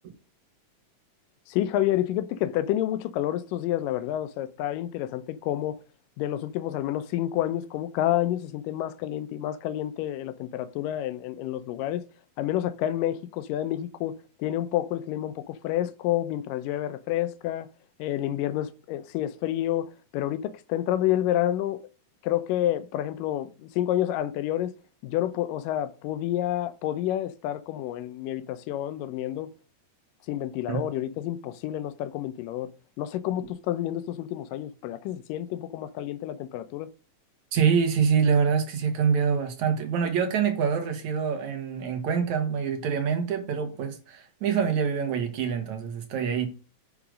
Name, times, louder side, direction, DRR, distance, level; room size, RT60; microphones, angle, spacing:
voice 1, 1.5-5.8 6.2-12.0 12.4-17.7 18.0-21.8 22.2-24.7 25.0-29.5 30.3-32.7 33.0-36.9, left 12 dB, 80° left, 2.3 m, -29 dB
voice 2, 37.5-46.5, right 6 dB, 60° right, 2.6 m, -25 dB
9.9 x 5.1 x 5.0 m
omnidirectional pair, 3.9 m